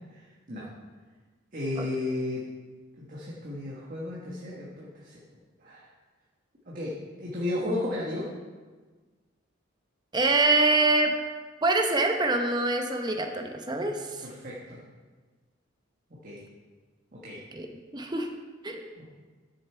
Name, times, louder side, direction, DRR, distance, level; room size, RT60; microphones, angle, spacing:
voice 1, 1.5-2.5 3.0-5.2 5.6-5.8 6.7-8.3 14.2-14.8 16.1-16.4 17.1-17.4 19.0-19.1, left 2 dB, 40° right, -5 dB, 1.4 m, -34 dB
voice 2, 10.1-11.2 11.6-14.3 17.5-18.3 18.6-18.9, right 2 dB, 20° right, 4 dB, 0.9 m, -25 dB
10.5 x 6.9 x 4.5 m, 1.4 s
head